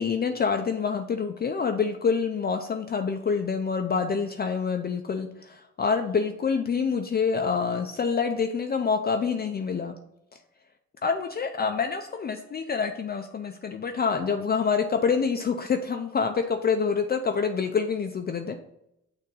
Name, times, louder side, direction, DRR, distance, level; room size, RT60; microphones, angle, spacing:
voice 1, 0.0-9.9 11.0-18.6, left 5 dB, 35° left, 5 dB, 0.5 m, -26 dB
6.5 x 2.6 x 5.4 m, 0.81 s
cardioid pair, 90°, 30 cm